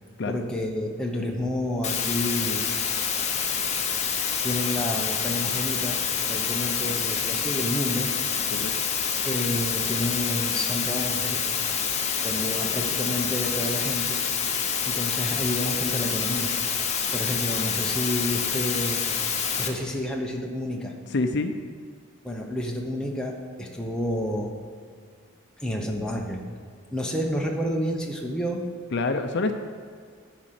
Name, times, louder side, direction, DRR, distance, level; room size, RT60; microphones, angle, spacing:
voice 1, 0.3-2.7 4.4-8.1 9.2-11.4 12.2-14.2 14.8-16.5 17.1-19.0 19.6-20.9 22.2-24.6 25.6-26.5 26.9-28.7, left 1 dB, 5° left, -1 dB, 0.9 m, -30 dB
sound 1, 1.8-19.7, left 7 dB, 30° left, 0.9 m, -27 dB
voice 2, 21.1-21.5 28.9-29.5, left 3 dB, 55° left, 7 dB, 0.5 m, -26 dB
11.0 x 5.0 x 7.6 m, 2.1 s
head